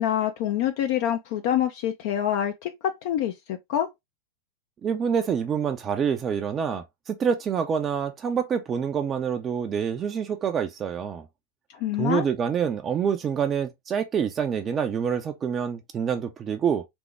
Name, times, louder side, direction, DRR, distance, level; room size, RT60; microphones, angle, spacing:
voice 1, 0.0-3.9 11.8-12.3, left 10 dB, 50° left, 0.6 m, -26 dB
voice 2, 4.8-11.2 12.0-16.9, right 7 dB, 25° right, 0.5 m, -26 dB
3.7 x 3.5 x 3.4 m
figure-of-eight pair, 90°, 0 cm